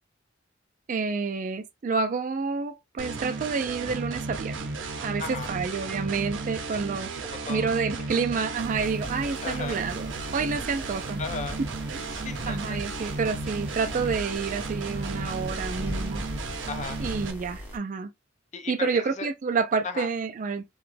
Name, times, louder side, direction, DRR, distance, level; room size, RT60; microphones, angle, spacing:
voice 1, 0.9-4.7 5.0-7.1 7.5-11.2 11.9-12.1 12.4-16.2 17.0-18.1 18.7-20.6, right 5 dB, 45° right, 0.3 m, -29 dB
sound 1, 3.0-17.3, right 3 dB, 90° right, 0.6 m, -34 dB
voice 2, 5.2-5.5 7.3-7.7 8.0-8.2 9.4-9.8 11.2-11.6 12.0-13.2 16.7-17.0 18.5-19.3 19.8-20.1, left 4 dB, 40° left, 0.5 m, -36 dB
sound 2, 8.5-17.8, equal, 10° right, 1.1 m, -39 dB
2.9 x 2.2 x 3.2 m
head